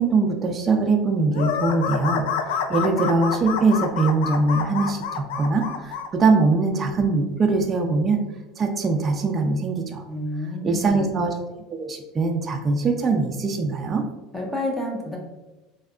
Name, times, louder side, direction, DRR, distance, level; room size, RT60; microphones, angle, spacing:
voice 1, 0.0-2.3 2.7-8.2 8.6-10.0 10.6-11.3 11.7-14.0, right 3 dB, 30° right, 3 dB, 0.4 m, -22 dB
sound 1, 1.3-6.1, left 6 dB, 85° left, 0.3 m, -28 dB
voice 2, 10.1-11.1 14.3-15.2, left 1 dB, 10° left, -1 dB, 0.9 m, -29 dB
3.3 x 2.8 x 2.4 m, 1.1 s
supercardioid pair, 110°, 0 cm